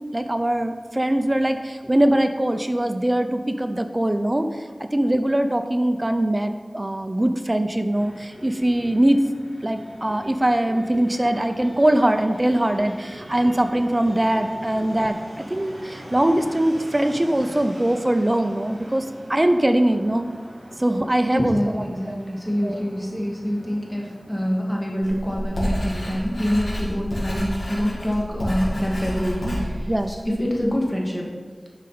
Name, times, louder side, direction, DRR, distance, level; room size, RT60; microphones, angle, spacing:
voice 1, 0.1-4.5 4.9-9.2 9.6-15.2 15.5-20.3 20.8-22.2 22.6-22.8 29.9-30.1, right 1 dB, 30° right, 8 dB, 0.7 m, -22 dB
Fixed-wing aircraft airplane, 7.9-25.9, right 1 dB, 65° right, 2.6 m, -43 dB
voice 2, 21.3-31.3, equal, 10° left, -2 dB, 2.1 m, -26 dB
Writing, 25.0-30.7, equal, 80° left, 2.7 m, -29 dB
11.5 x 5.1 x 4.3 m, 1.5 s
wide cardioid pair, 40°, 0 cm